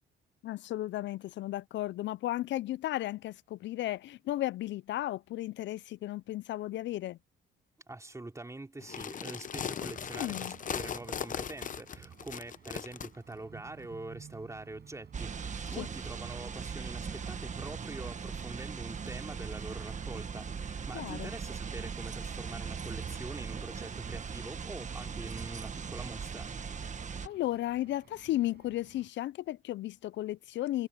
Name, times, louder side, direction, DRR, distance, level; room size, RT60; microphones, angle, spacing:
voice 1, 0.4-7.2 10.1-10.6 15.8-15.9 20.9-21.3 27.2-30.9, left 15 dB, 65° left, 0.4 m, -34 dB
voice 2, 7.9-26.5, right 2 dB, 15° right, 3.3 m, -45 dB
sound 1, 8.8-13.1, left 8 dB, 40° left, 0.8 m, -38 dB
sound 2, 9.9-29.1, right 8 dB, 55° right, 7.9 m, -57 dB
sound 3, 15.1-27.3, right 6 dB, 40° right, 1.5 m, -39 dB
cardioid pair, 90°, 20 cm